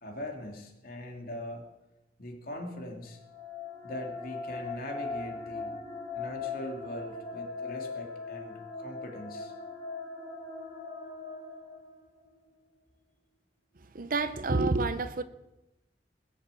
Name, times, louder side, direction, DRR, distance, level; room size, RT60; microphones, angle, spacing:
voice 1, 0.0-1.6 2.2-3.2 3.8-5.8 6.1-9.5, left 1 dB, 55° left, 2.9 m, -41 dB
sound 1, 3.1-12.3, left 4 dB, 40° left, 3.5 m, -40 dB
voice 2, 13.9-15.2, right 3 dB, 50° right, 0.8 m, -28 dB
20.0 x 7.3 x 8.4 m
head